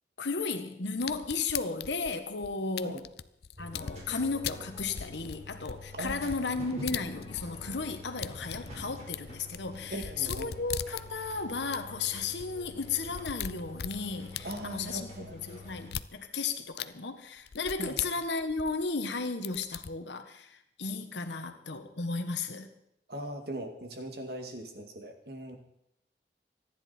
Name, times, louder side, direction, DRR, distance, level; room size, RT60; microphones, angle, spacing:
voice 1, 0.2-3.0 3.6-22.7, left 4 dB, 85° left, 7 dB, 1.3 m, -34 dB
sound 1, 1.0-4.0 4.4-7.7 7.9-11.3 11.7-11.8 12.0-12.1 12.4-12.5 12.8-15.0 15.8-16.1 16.8-16.9 17.5-19.1 19.4-19.9, left 9 dB, 65° left, 0.5 m, -39 dB
sound 2, 3.6-15.9, left 2 dB, 40° right, 4.6 m, -47 dB
Drum, 3.7-5.2 6.3-9.4, left 1 dB, 30° left, 1.1 m, -50 dB
voice 2, 6.0-6.5 9.9-10.6 14.4-15.4 17.8-18.1 23.1-25.6, right 1 dB, 60° right, 4 dB, 2.4 m, -40 dB
25.0 x 10.5 x 4.4 m, 0.79 s
head